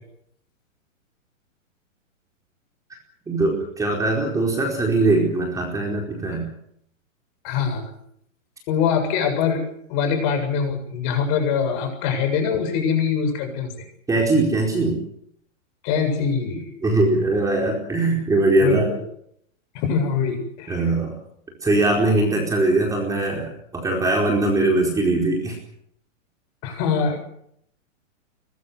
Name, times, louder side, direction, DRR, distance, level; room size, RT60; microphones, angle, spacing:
voice 1, 3.3-6.4 14.1-15.0 16.8-18.9 20.7-21.2 21.6-25.6, right 2 dB, 10° right, 0 dB, 4.5 m, -21 dB
voice 2, 7.4-7.9 8.7-9.6 9.9-13.7 15.8-16.8 18.6-19.0 19.7-20.9 26.6-27.2, left 6 dB, 35° left, 6 dB, 7.6 m, -23 dB
23.0 x 21.0 x 8.1 m, 0.72 s
hypercardioid pair, 155°, 40 cm